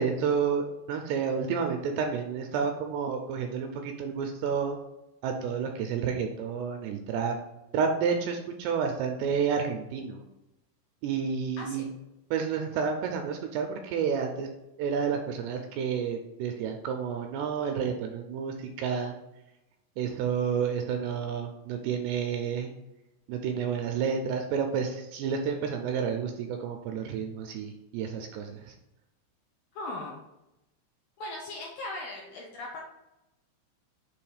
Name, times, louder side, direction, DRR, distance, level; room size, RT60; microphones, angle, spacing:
voice 1, 0.0-4.8 5.2-7.4 7.7-10.2 11.0-11.9 12.3-14.5 14.8-19.2 20.0-22.7 23.3-28.7, right 6 dB, 85° right, 3 dB, 2.5 m, -30 dB
voice 2, 11.6-11.9 29.8-30.2 31.2-32.8, left 2 dB, 85° left, -1 dB, 2.0 m, -38 dB
7.0 x 3.0 x 4.9 m, 0.93 s
omnidirectional pair, 5.2 m